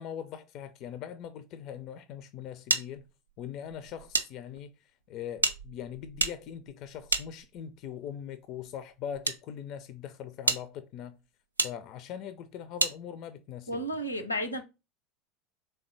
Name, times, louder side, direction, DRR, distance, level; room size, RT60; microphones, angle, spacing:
voice 1, 0.0-3.0 3.4-4.7 5.1-11.2 11.6-13.8, left 9 dB, 45° left, 0.4 m, -41 dB
sound 1, 2.7-4.3 4.6-4.7 5.4-7.8 8.6-9.4 9.9-10.0 10.4-10.6 11.6-11.7 12.8-13.0, right 3 dB, 80° right, 0.4 m, -30 dB
voice 2, 13.7-14.6, equal, 90° left, 0.7 m, -32 dB
3.7 x 3.3 x 4.0 m
figure-of-eight pair, 75°, 0 cm